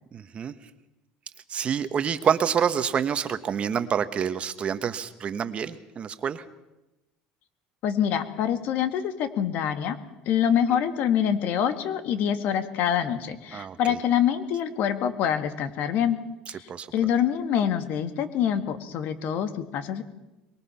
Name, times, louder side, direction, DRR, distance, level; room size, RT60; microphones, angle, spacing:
voice 1, 0.1-0.5 1.5-6.4 13.5-14.0 16.7-16.9, right 7 dB, 35° right, 11 dB, 1.3 m, -27 dB
voice 2, 7.8-10.0 10.3-16.2 16.5-20.0, left 9 dB, 60° left, 9 dB, 2.0 m, -25 dB
23.5 x 22.0 x 5.8 m, 0.99 s
supercardioid pair, 115°, 3 cm